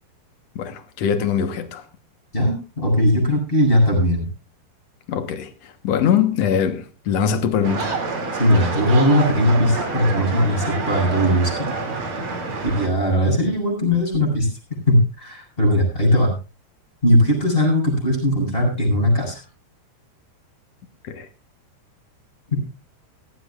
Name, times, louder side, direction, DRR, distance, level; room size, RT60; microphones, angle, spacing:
voice 1, 0.5-1.8 5.1-8.0 21.0-21.3, left 8 dB, 80° left, 1.4 m, -22 dB
voice 2, 2.3-4.3 8.4-11.5 12.8-14.5 14.9-16.3 17.0-19.4, equal, 10° left, 7.9 m, -18 dB
sound 1, 7.6-12.9, right 3 dB, 35° right, 3.0 m, -27 dB
19.0 x 15.5 x 2.4 m
omnidirectional pair, 4.8 m